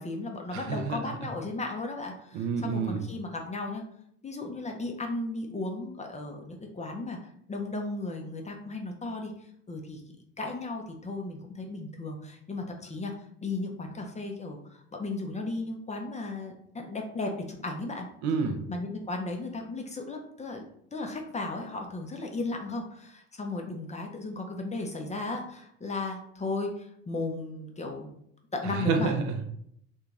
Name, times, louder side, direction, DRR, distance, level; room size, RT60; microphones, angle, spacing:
voice 1, 0.0-3.8 4.2-7.2 7.5-9.3 9.7-10.0 10.4-13.1 13.4-18.1 18.7-20.6 20.9-28.1 28.5-29.1, left 2 dB, 20° left, 2 dB, 0.6 m, -35 dB
voice 2, 0.5-1.0 2.3-3.1 18.2-18.6 28.6-29.5, right 5 dB, 55° right, 5 dB, 0.6 m, -29 dB
2.8 x 2.7 x 3.4 m, 0.70 s
hypercardioid pair, 60°, 36 cm